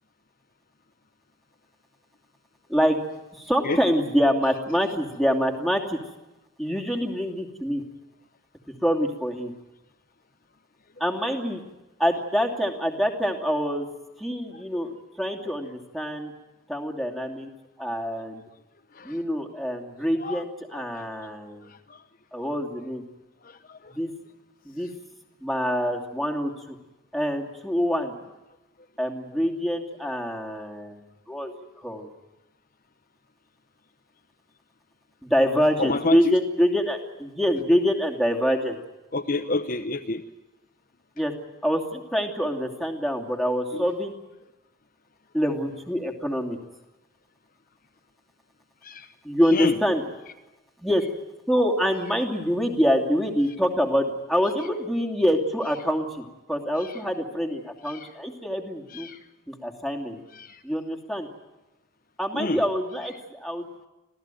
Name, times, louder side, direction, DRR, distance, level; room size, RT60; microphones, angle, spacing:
voice 1, 3.3-6.0 6.6-7.8 8.8-9.5 11.0-11.6 12.0-13.9 14.2-14.9 15.2-16.3 16.7-17.5 17.8-18.4 19.0-21.7 22.3-23.0 23.9-24.1 24.6-24.9 25.4-26.8 27.1-28.1 29.0-31.5 31.8-32.1 35.2-38.8 41.2-41.3 41.6-44.1 45.3-46.6 49.2-50.0 50.8-51.0 51.5-59.1 59.5-60.2 60.6-61.3 62.2-63.9, equal, ahead, 1 dB, 2.7 m, -25 dB
voice 2, 14.5-15.0 18.1-18.3 18.9-19.2 19.6-19.7 20.2-20.4 20.7-22.1 22.3-22.5 23.4-24.0 24.7-24.9 28.8-28.9 35.8-36.3 39.1-40.2 43.7-43.9 48.8-49.2 49.4-49.8 53.4-53.5 54.6-54.7 56.8-57.0 57.8-58.2 58.9-59.3 60.3-60.6 62.3-62.6, left 2 dB, 40° left, 7 dB, 1.0 m, -31 dB
26.5 x 16.5 x 9.1 m, 1.0 s
head